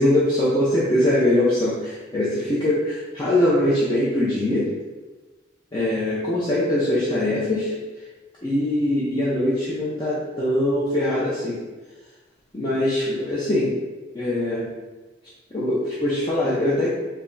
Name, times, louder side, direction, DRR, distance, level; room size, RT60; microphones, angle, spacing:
voice 1, 0.0-4.7 5.7-7.8 8.4-11.6 12.5-13.8 14.1-14.7 15.5-16.9, left 1 dB, 20° left, -8 dB, 0.5 m, -22 dB
3.2 x 2.2 x 3.8 m, 1.2 s
head